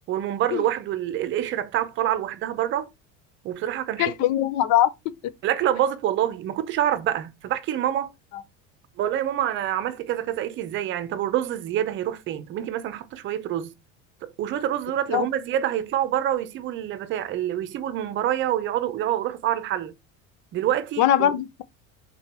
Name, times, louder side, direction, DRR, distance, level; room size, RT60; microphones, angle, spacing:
voice 1, 0.1-2.9 3.4-4.1 5.4-8.1 9.0-13.7 14.2-19.9 20.5-21.3, right 11 dB, 35° right, 0.7 m, -26 dB
voice 2, 4.0-4.9 15.1-15.3 21.0-21.6, left 11 dB, 55° left, 0.8 m, -21 dB
5.7 x 4.1 x 4.4 m
cardioid pair, 170°, 35 cm